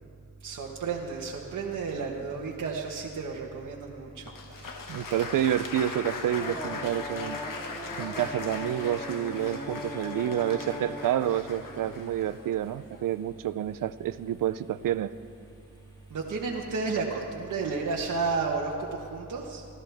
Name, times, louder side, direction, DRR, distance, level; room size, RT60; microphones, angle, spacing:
voice 1, 0.4-5.1 16.1-19.7, right 4 dB, 65° right, -2 dB, 1.3 m, -32 dB
Applause, 4.3-13.2, left 4 dB, 80° left, 1.4 m, -40 dB
voice 2, 4.9-7.4 8.0-15.1, right 11 dB, 85° right, 15 dB, 0.5 m, -29 dB
sound 1, 6.3-13.3 14.1-14.5 14.8-16.1, left 1 dB, 10° left, 2.6 m, -40 dB
24.5 x 15.0 x 3.5 m, 2.5 s
wide cardioid pair, 120°, 32 cm